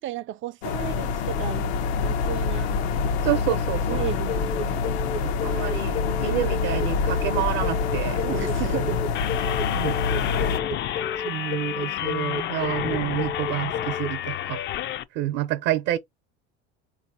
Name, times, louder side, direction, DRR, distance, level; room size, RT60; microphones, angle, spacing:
voice 1, 0.0-1.7 2.0-2.7 3.9-4.8 8.2-9.9, right 13 dB, 40° right, 0.4 m, -34 dB
sound 1, 0.6-10.6, left 5 dB, 80° left, 0.8 m, -26 dB
voice 2, 3.2-4.0 5.1-8.2 9.7-10.0 11.2-14.6 14.9-16.0, right 13 dB, 65° right, 0.8 m, -28 dB
sound 2, 4.3-14.1, left 4 dB, 55° left, 0.9 m, -32 dB
sound 3, 9.1-15.0, left 12 dB, 35° left, 0.4 m, -30 dB
4.1 x 2.7 x 2.8 m
supercardioid pair, 95°, 31 cm